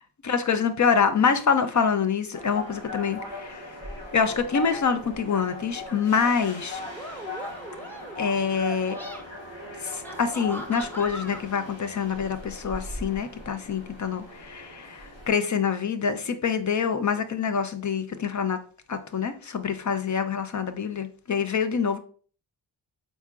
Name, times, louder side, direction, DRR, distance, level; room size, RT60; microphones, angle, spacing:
voice 1, 0.2-3.8 4.1-6.8 8.2-9.0 9.8-18.6 18.9-22.0, left 6 dB, 40° left, 9 dB, 0.6 m, -26 dB
sound 1, 2.3-15.3, left 2 dB, 75° left, 1.6 m, -39 dB
sound 2, 5.9-6.1 6.9-8.3 8.8-9.2 10.0-11.4, equal, 5° left, 0.7 m, -40 dB
4.2 x 3.7 x 2.4 m, 0.42 s
cardioid pair, 70°, 46 cm